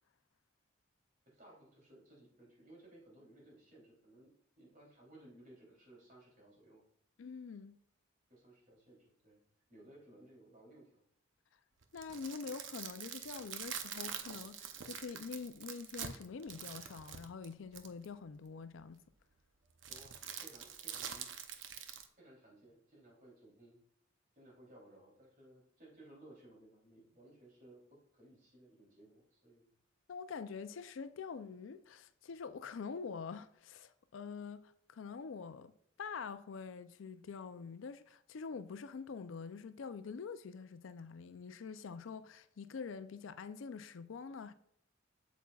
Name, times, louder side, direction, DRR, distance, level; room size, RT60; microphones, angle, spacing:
voice 1, 1.2-6.8 8.3-9.4 9.7-11.0 19.9-21.3 22.1-23.8 24.3-29.7, right 1 dB, 45° right, 3.1 m, -60 dB
voice 2, 7.2-7.8 11.9-19.0 30.1-35.7 36.0-44.5, left 5 dB, 75° left, 0.4 m, -45 dB
sound 1, 11.8-18.1 19.8-22.1, right 8 dB, 65° right, 0.7 m, -45 dB
8.4 x 7.1 x 2.3 m
head